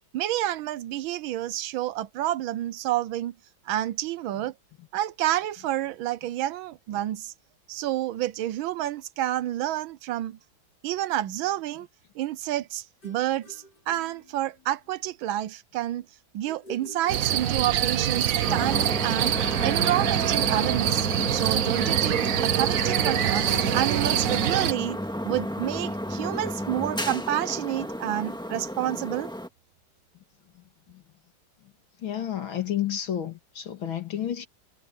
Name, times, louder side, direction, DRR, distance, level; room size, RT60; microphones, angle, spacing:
voice 1, 0.1-3.3 3.7-4.5 4.9-7.3 7.7-10.4 10.8-11.9 12.2-16.0 16.3-25.0 25.2-29.3, right 13 dB, 80° right, 1.5 m, -29 dB
sound 1, 13.0-15.0 16.4-18.0, right 1 dB, 55° left, 5.9 m, -47 dB
sound 2, 17.1-24.7, right 11 dB, 60° right, 0.9 m, -25 dB
sound 3, 18.5-29.5, equal, ahead, 1.8 m, -32 dB
voice 2, 32.0-34.5, left 10 dB, 80° left, 2.9 m, -30 dB
omnidirectional pair, 2.2 m